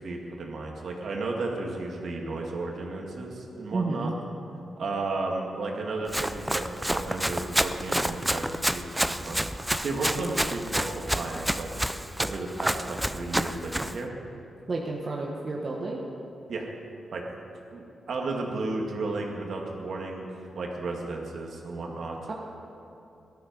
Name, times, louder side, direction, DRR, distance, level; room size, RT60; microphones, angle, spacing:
voice 1, 0.0-4.1 4.8-11.7 12.2-14.1 16.5-16.7 17.1-17.2 17.7-22.2, right 3 dB, 60° right, 0 dB, 2.2 m, -33 dB
voice 2, 3.7-4.1 14.7-16.0 22.3-22.4, right 3 dB, 40° right, -2 dB, 1.2 m, -31 dB
Run, 6.1-14.0, equal, 5° right, 0.4 m, -29 dB
18.0 x 13.0 x 5.4 m, 2.8 s
wide cardioid pair, 135°, 0 cm